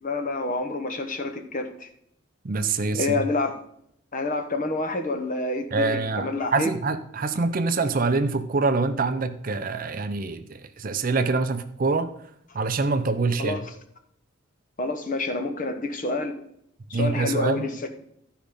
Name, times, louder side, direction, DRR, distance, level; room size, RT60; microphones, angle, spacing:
voice 1, 0.0-1.9 2.9-3.6 4.1-6.7 13.4-13.7 14.8-16.4 16.9-17.9, left 2 dB, 40° left, 7 dB, 0.9 m, -28 dB
voice 2, 2.4-3.1 5.7-12.1 12.5-13.6 16.9-17.7, right 3 dB, 40° right, 10 dB, 0.5 m, -25 dB
12.5 x 5.0 x 5.2 m, 0.71 s
head